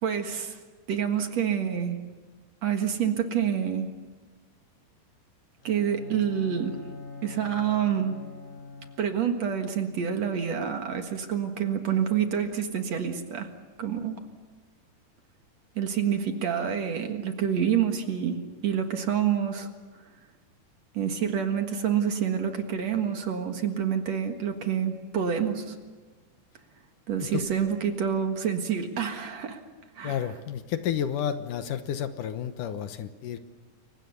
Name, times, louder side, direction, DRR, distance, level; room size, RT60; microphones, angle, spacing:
voice 1, 0.0-0.6 0.9-2.0 2.6-3.9 5.6-6.8 7.2-8.2 9.0-13.5 13.8-14.2 15.8-19.7 20.9-25.8 27.1-29.6 30.0-30.3, right 8 dB, 55° right, 5 dB, 2.6 m, -27 dB
Bowed string instrument, 5.6-9.3, left 3 dB, 20° right, 3.8 m, -43 dB
voice 2, 30.0-33.4, left 9 dB, 75° left, 9 dB, 2.5 m, -31 dB
29.0 x 23.5 x 7.0 m, 1.4 s
omnidirectional pair, 4.0 m